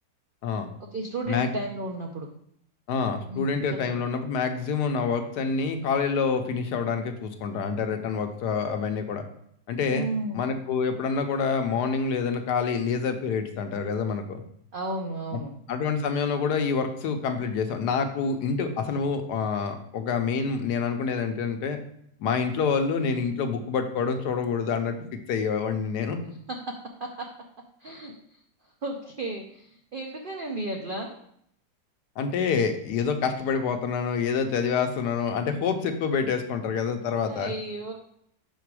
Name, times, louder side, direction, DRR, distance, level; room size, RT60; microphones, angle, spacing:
voice 1, 0.9-2.3 3.3-4.0 9.9-10.5 14.7-15.5 26.5-27.3 27.8-28.4 28.8-31.2 37.2-37.9, right 2 dB, 85° right, 2 dB, 0.4 m, -34 dB
voice 2, 2.9-9.2 9.7-10.1 10.3-14.4 15.3-15.4 15.7-21.8 22.2-26.2 32.2-37.5, left 5 dB, 80° left, 6 dB, 1.3 m, -27 dB
5.9 x 4.5 x 4.7 m, 0.70 s
omnidirectional pair, 1.8 m